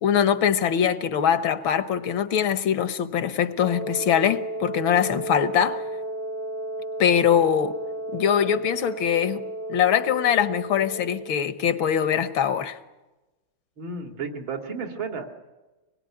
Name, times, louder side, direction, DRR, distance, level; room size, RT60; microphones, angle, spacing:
voice 1, 0.0-5.8 7.0-7.8 8.1-9.4 9.7-12.8, left 8 dB, 75° left, 1.9 m, -22 dB
Wind instrument woodwind instrument, 3.6-11.4, right 2 dB, 15° right, 0.7 m, -33 dB
voice 2, 13.8-15.3, right 4 dB, 70° right, 3.4 m, -33 dB
25.0 x 21.0 x 10.0 m
omnidirectional pair, 2.2 m